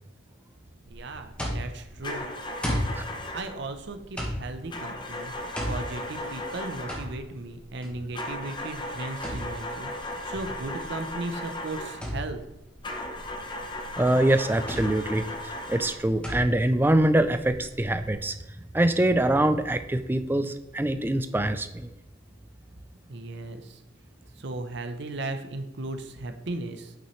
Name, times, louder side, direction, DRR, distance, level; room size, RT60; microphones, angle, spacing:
sound 1, 0.9-18.1, equal, 5° left, 1.4 m, -37 dB
voice 1, 0.9-2.3 3.3-5.3 5.7-12.4 23.1-23.8 24.4-26.9, right 2 dB, 60° right, 7 dB, 0.6 m, -36 dB
sound 2, 2.0-3.6 4.7-7.2 8.1-12.1 12.8-16.1, left 1 dB, 20° left, 0.8 m, -36 dB
voice 2, 14.0-18.3 18.7-21.9, right 1 dB, 10° right, 10 dB, 0.3 m, -24 dB
8.7 x 5.9 x 3.1 m, 1.0 s
head